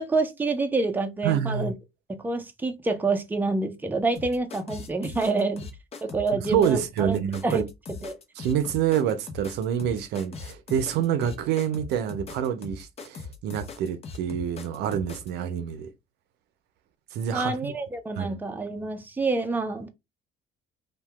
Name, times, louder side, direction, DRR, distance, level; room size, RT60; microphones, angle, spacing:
voice 1, 0.0-1.7 2.1-5.7 6.0-7.6 8.0-8.2 17.3-19.9, right 3 dB, 10° right, 0.5 m, -27 dB
voice 2, 1.2-1.7 6.5-7.6 8.4-15.9 17.1-17.7 18.2-18.4, right 9 dB, 80° right, 0.5 m, -27 dB
sound 1, 4.2-15.3, left 4 dB, 35° left, 0.7 m, -40 dB
2.7 x 2.2 x 3.2 m
cardioid pair, 110°, 17 cm